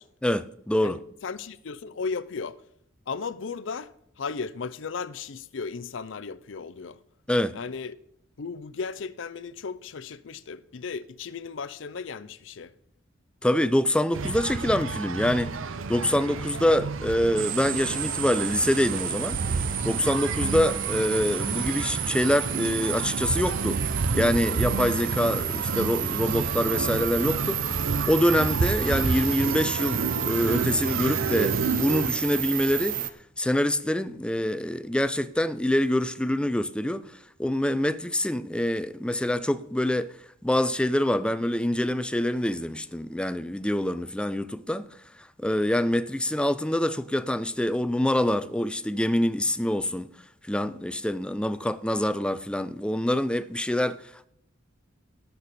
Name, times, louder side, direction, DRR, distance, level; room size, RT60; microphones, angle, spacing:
voice 1, 0.2-1.0 7.3-7.5 13.4-15.6 15.9-19.4 19.8-23.8 24.1-27.8 28.1-33.0 33.4-37.0 37.4-40.1 40.4-44.8 45.4-50.1 50.5-54.3, left 1 dB, 5° left, 0.4 m, -25 dB
voice 2, 0.8-2.6 3.1-7.0 7.5-8.0 8.4-12.7, left 5 dB, 70° left, 0.5 m, -35 dB
sound 1, 14.1-32.1, right 4 dB, 80° right, 0.6 m, -30 dB
sound 2, 17.4-33.1, right 10 dB, 45° right, 0.7 m, -31 dB
17.5 x 6.9 x 4.2 m
head